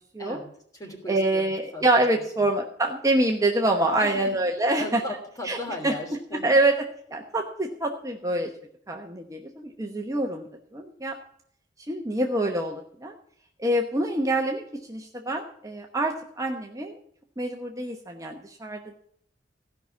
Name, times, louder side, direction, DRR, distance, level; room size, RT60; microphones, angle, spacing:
voice 1, 0.2-1.8 4.0-4.4 4.8-6.6, left 1 dB, 20° left, 2 dB, 3.3 m, -37 dB
voice 2, 1.1-5.0 5.4-5.6 5.8-5.9 6.4-6.8 7.1-8.5 8.9-11.2 11.9-13.1 13.6-16.9 17.4-18.9, right 1 dB, 20° right, 2 dB, 1.0 m, -26 dB
16.0 x 5.9 x 8.3 m, 0.65 s
head